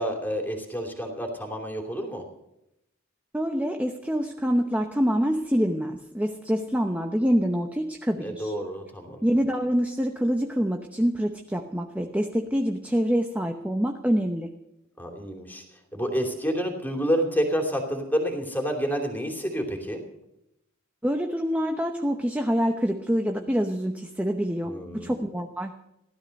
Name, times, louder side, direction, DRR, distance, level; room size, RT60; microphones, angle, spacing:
voice 1, 0.0-2.2 8.2-9.2 15.0-15.6 15.9-20.0 24.6-25.1, equal, 10° left, 3 dB, 2.8 m, -29 dB
voice 2, 3.3-8.5 9.2-14.5 21.0-25.7, equal, 5° right, 4 dB, 0.9 m, -26 dB
16.5 x 13.0 x 6.5 m, 0.85 s
head